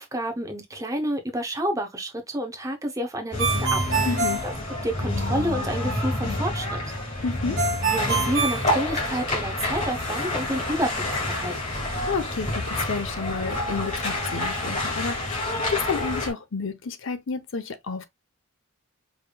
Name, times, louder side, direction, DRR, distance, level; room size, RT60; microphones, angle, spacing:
voice 1, 0.0-4.2 4.4-4.5 4.8-7.2 7.9-11.8, equal, 15° right, 0.7 m, -30 dB
sound 1, 3.3-16.3, left 1 dB, 35° left, 2.1 m, -28 dB
Ringtone, 3.4-5.3 7.6-9.5, right 5 dB, 55° right, 1.5 m, -26 dB
voice 2, 4.1-4.5 7.2-7.6 12.0-18.1, left 4 dB, 65° left, 0.7 m, -30 dB
4.9 x 3.3 x 2.2 m
head